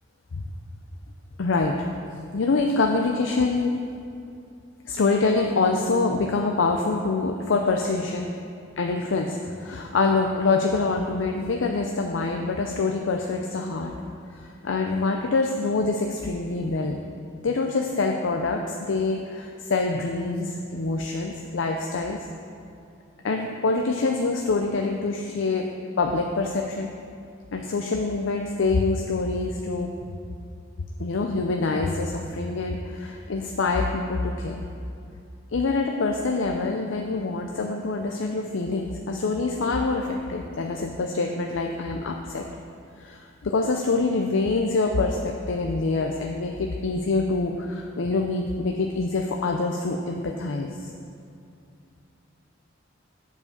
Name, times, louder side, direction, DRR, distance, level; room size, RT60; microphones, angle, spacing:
voice 1, 1.4-1.9 2.3-3.8 4.8-8.3 8.8-13.9 14.3-17.0 17.4-22.3 23.2-25.6 26.0-26.9 27.5-29.9 31.0-34.6 35.5-42.4 43.0-50.9, left 3 dB, 80° left, 2 dB, 0.5 m, -25 dB
8.2 x 4.8 x 6.6 m, 2.5 s
head